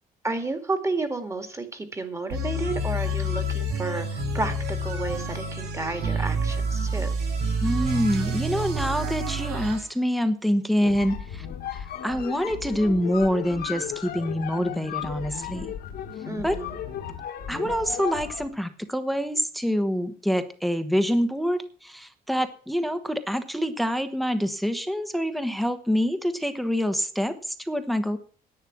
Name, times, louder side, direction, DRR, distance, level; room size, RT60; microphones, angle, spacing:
voice 1, 0.2-7.1 16.2-16.8, right 3 dB, 15° right, 7 dB, 2.2 m, -31 dB
sound 1, 2.3-9.8, right 1 dB, 85° right, 4.7 m, -28 dB
voice 2, 7.6-11.5 11.7-15.7 16.4-16.6 17.5-28.2, equal, ahead, 10 dB, 1.1 m, -26 dB
sound 2, 10.7-18.6, left 9 dB, 65° left, 1.6 m, -35 dB
10.5 x 9.4 x 6.1 m, 0.43 s
cardioid pair, 110°, 17 cm